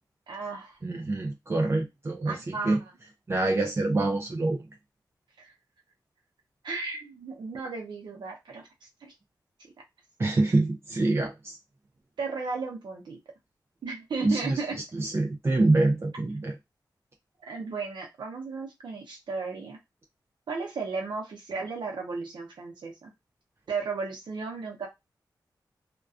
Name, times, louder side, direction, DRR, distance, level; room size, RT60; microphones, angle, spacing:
voice 1, 0.3-0.8 2.3-2.9 5.4-5.5 6.6-9.1 12.2-13.2 13.8-14.8 17.4-19.8 20.5-23.1 23.7-24.9, right 4 dB, 80° right, 0.6 m, -35 dB
voice 2, 0.8-2.4 2.6-2.8 3.3-4.7 10.2-11.6 14.2-14.6 14.9-16.5, right 2 dB, 35° right, 0.4 m, -25 dB
2.3 x 2.2 x 2.4 m
cardioid pair, 65°, 8 cm